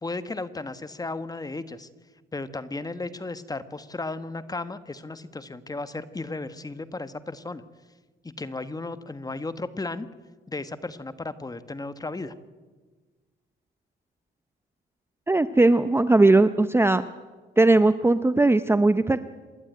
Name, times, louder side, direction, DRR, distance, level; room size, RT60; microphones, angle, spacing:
voice 1, 0.0-1.9 2.3-7.6 8.2-10.1 10.5-12.3, left 3 dB, 20° left, 12 dB, 1.3 m, -34 dB
voice 2, 15.3-17.0 17.6-19.2, right 2 dB, 10° right, 12 dB, 0.7 m, -19 dB
27.0 x 11.5 x 9.3 m, 1.3 s
cardioid pair, 90°, 20 cm